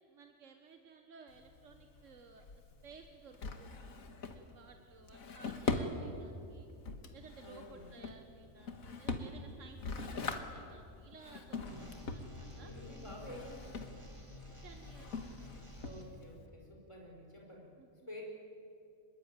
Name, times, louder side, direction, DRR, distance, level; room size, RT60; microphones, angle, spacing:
voice 1, 0.0-2.5 2.8-3.9 4.2-6.7 7.1-12.7 14.6-15.5 17.8-17.9, right 5 dB, 65° right, 5 dB, 1.7 m, -57 dB
Drawer open or close, 1.3-16.5, left 3 dB, 90° left, 2.0 m, -43 dB
voice 2, 7.4-7.9 11.5-12.0 12.6-13.8 15.8-17.7 18.1-18.2, left 1 dB, 20° left, 0 dB, 5.2 m, -50 dB
sound 1, 11.7-16.0, left 2 dB, 20° right, 3.0 m, -51 dB
24.5 x 21.5 x 9.1 m, 2.6 s
omnidirectional pair, 1.4 m